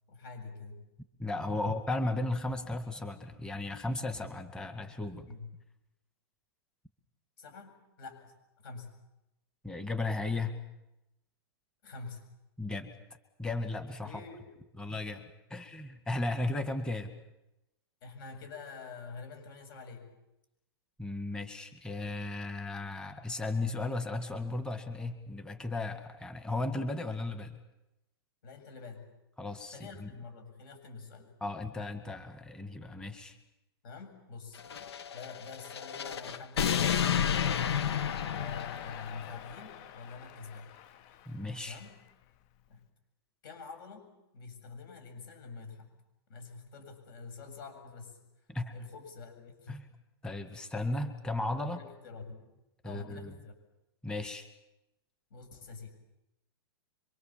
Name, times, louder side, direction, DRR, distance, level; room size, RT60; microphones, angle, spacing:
voice 1, 0.1-0.9 1.6-1.7 5.3-5.6 7.4-9.0 11.8-12.3 14.0-14.5 18.0-20.1 28.4-29.1 29.7-31.3 33.8-34.6 35.1-37.9 38.4-40.8 41.6-42.0 42.7-42.9 43.4-44.1 44.3-45.9 46.3-48.2 48.7-49.8 51.6-52.5 52.8-53.5 55.3-55.9, left 4 dB, 55° left, 7 dB, 7.5 m, -46 dB
voice 2, 1.2-5.3 9.6-10.6 12.6-13.0 13.4-14.2 14.8-17.1 21.0-27.5 29.4-30.1 31.4-33.4 41.3-41.8 48.5-48.7 49.7-49.9 50.2-51.8 52.8-53.3 54.0-54.5, left 2 dB, 5° left, 8 dB, 2.0 m, -35 dB
sound 1, 34.6-39.4, left 8 dB, 75° left, 1.2 m, -31 dB
Crowd, 37.5-42.7, left 10 dB, 40° left, 1.0 m, -47 dB
26.0 x 24.0 x 7.4 m, 0.92 s
hypercardioid pair, 135°, 14 cm